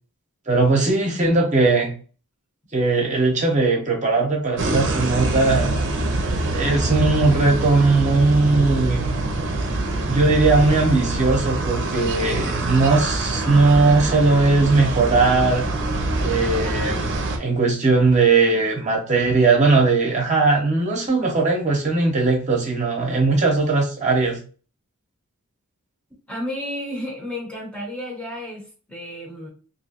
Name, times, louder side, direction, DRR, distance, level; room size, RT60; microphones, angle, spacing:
voice 1, 0.5-1.9 2.7-5.8 6.5-9.2 10.1-15.7 16.2-17.1 17.4-24.4, right 3 dB, 35° right, 0 dB, 0.9 m, -19 dB
sound 1, 4.6-17.4, right 2 dB, 55° right, 0.7 m, -24 dB
voice 2, 26.3-29.5, left 1 dB, 5° left, -1 dB, 0.8 m, -32 dB
2.9 x 2.7 x 2.8 m, 0.39 s
head